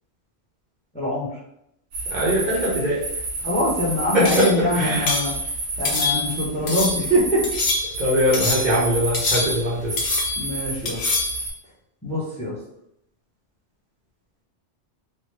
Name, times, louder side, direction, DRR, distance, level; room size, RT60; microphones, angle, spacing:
voice 1, 0.9-1.3 3.4-5.3 5.8-7.5 10.4-11.0 12.0-12.6, equal, 5° left, -5 dB, 0.6 m, -24 dB
sound 1, 1.9-11.5, right 2 dB, 85° right, 1.2 m, -30 dB
voice 2, 2.1-3.1 4.1-5.1 8.0-10.0, equal, 45° right, -7 dB, 0.7 m, -22 dB
sound 2, 4.2-4.6 5.1-5.3 5.8-6.4 6.7-7.1 7.4-8.0 8.3-8.8 9.1-9.7 10.0-10.5 10.8-11.4, left 3 dB, 80° left, 1.0 m, -25 dB
3.0 x 2.1 x 3.1 m, 0.78 s
omnidirectional pair, 1.2 m